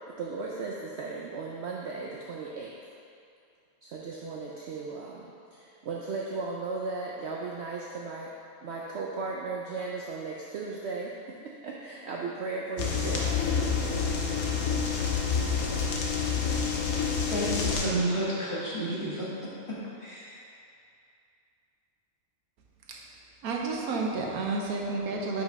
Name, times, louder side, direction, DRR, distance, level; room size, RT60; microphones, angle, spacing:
voice 1, 0.1-2.8 3.8-8.3 8.6-13.3, right 4 dB, 60° right, -3 dB, 0.8 m, -36 dB
sound 1, 12.8-17.9, left 5 dB, 85° left, 1.3 m, -28 dB
voice 2, 17.3-19.3 19.7-20.4, right 1 dB, 20° left, -9 dB, 1.5 m, -31 dB
voice 3, 23.4-25.4, right 3 dB, 90° right, -1 dB, 1.3 m, -31 dB
5.6 x 5.0 x 5.2 m, 2.5 s
omnidirectional pair, 1.5 m